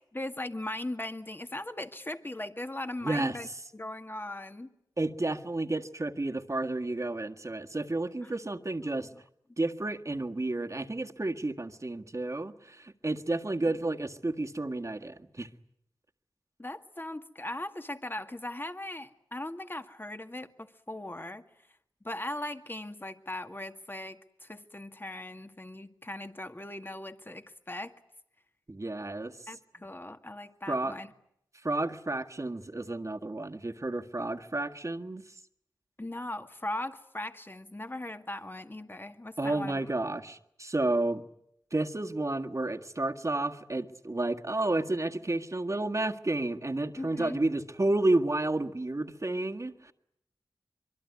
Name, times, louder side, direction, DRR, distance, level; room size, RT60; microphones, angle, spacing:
voice 1, 0.1-3.5 3.7-4.7 8.2-8.3 9.0-9.1 16.6-21.4 22.0-28.0 29.5-31.1 36.0-39.8 47.0-47.4, left 1 dB, 25° left, 7 dB, 2.0 m, -39 dB
voice 2, 3.0-3.4 5.0-9.1 9.6-15.5 28.7-29.3 30.7-30.9 31.6-35.2 39.4-41.2 41.7-49.9, right 2 dB, 40° right, 5 dB, 1.8 m, -31 dB
25.0 x 23.5 x 9.6 m, 0.76 s
cardioid pair, 45°, 8 cm